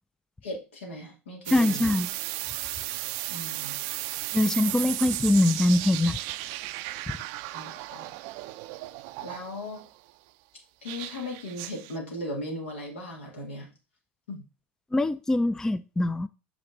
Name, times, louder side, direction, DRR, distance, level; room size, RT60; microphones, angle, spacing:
voice 1, 0.4-1.9 3.3-3.8 7.5-8.1 9.2-9.8 10.8-13.7 14.3-14.4, left 1 dB, 80° left, 2.5 m, -37 dB
voice 2, 1.5-2.1 4.3-6.2 14.9-16.3, left 1 dB, 10° left, 0.3 m, -23 dB
sound 1, 1.5-9.9 10.9-12.0, right 17 dB, 55° right, 0.4 m, -35 dB
6.4 x 5.1 x 3.9 m
hypercardioid pair, 85°, 6 cm